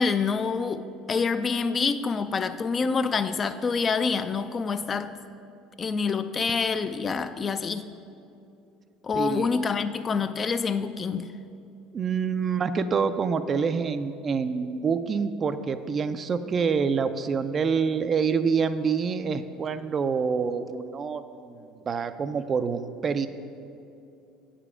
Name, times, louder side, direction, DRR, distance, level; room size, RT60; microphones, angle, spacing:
voice 1, 0.0-5.1 5.8-7.9 9.0-11.3, left 5 dB, 35° left, 11 dB, 0.3 m, -27 dB
voice 2, 9.2-9.6 11.9-23.3, right 5 dB, 40° right, 11 dB, 0.4 m, -27 dB
8.1 x 5.0 x 4.9 m, 2.7 s
hypercardioid pair, 70°, 0 cm